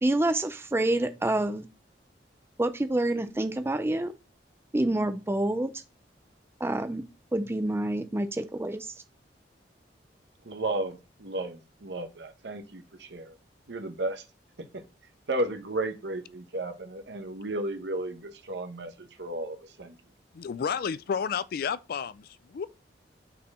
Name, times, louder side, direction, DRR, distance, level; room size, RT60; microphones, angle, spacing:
voice 1, 0.0-1.7 2.6-4.1 4.7-5.8 6.6-7.0 7.3-8.9, right 1 dB, 15° right, 0.4 m, -27 dB
voice 2, 10.4-13.3 13.7-14.2 15.3-19.9, right 2 dB, 70° right, 1.1 m, -34 dB
voice 3, 20.3-22.7, left 6 dB, 55° left, 0.4 m, -31 dB
5.6 x 4.3 x 4.2 m
head